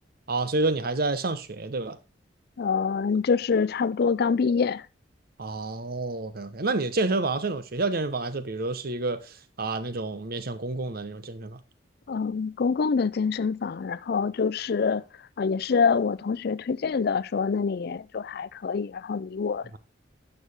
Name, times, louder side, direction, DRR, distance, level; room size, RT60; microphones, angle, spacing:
voice 1, 0.3-2.0 5.4-11.6, right 3 dB, 55° right, 1.0 m, -29 dB
voice 2, 2.6-4.9 12.1-15.0 15.4-19.8, left 5 dB, 60° left, 0.4 m, -26 dB
11.0 x 6.9 x 3.5 m
head